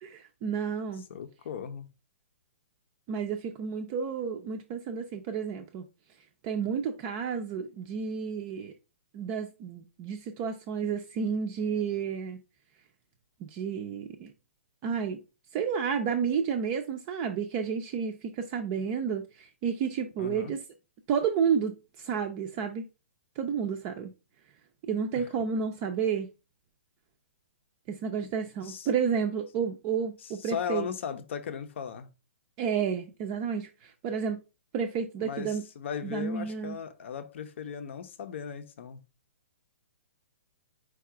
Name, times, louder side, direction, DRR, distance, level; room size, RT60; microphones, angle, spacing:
voice 1, 0.0-1.1 3.1-5.8 6.4-8.7 9.1-12.4 13.4-14.3 14.8-15.2 15.5-20.6 21.1-22.8 23.4-24.1 24.9-26.3 27.9-30.9 32.6-34.4 34.7-35.6 36.0-36.8, right 6 dB, 25° right, 0.4 m, -31 dB
voice 2, 1.1-1.9 20.2-20.5 25.1-25.3 28.2-28.3 28.6-28.9 30.2-32.1 35.2-39.0, left 7 dB, 55° left, 0.7 m, -37 dB
4.7 x 2.3 x 4.7 m
hypercardioid pair, 155°, 7 cm